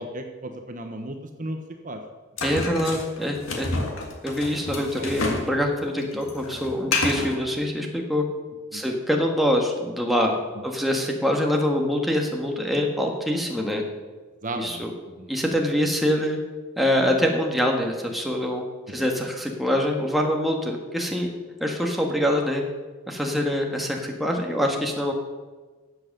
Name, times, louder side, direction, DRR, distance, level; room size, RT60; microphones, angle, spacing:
voice 1, 0.0-1.6 1.8-2.0 2.5-2.6 4.7-5.4 8.7-8.8 14.4-14.8 15.2-15.3 19.0-19.1, right 1 dB, 40° right, 5 dB, 1.0 m, -35 dB
sound 1, 2.4-5.5 5.8-7.4, left 3 dB, 75° left, 2.1 m, -28 dB
voice 2, 2.4-3.7 4.2-8.2 8.7-10.3 10.6-13.8 14.5-14.9 15.3-16.4 16.8-21.3 21.6-22.6 23.1-25.1, equal, ahead, 0 dB, 1.5 m, -24 dB
13.0 x 7.9 x 6.6 m, 1.3 s
head